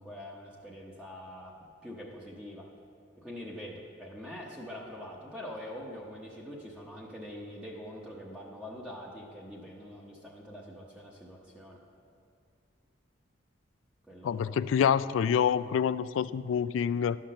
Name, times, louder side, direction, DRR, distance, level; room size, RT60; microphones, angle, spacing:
voice 1, 0.0-2.7 3.2-11.8 14.1-14.7, equal, 5° right, -4 dB, 0.9 m, -44 dB
voice 2, 14.2-17.2, left 8 dB, 85° left, 17 dB, 0.3 m, -27 dB
11.5 x 5.9 x 6.4 m, 2.4 s
head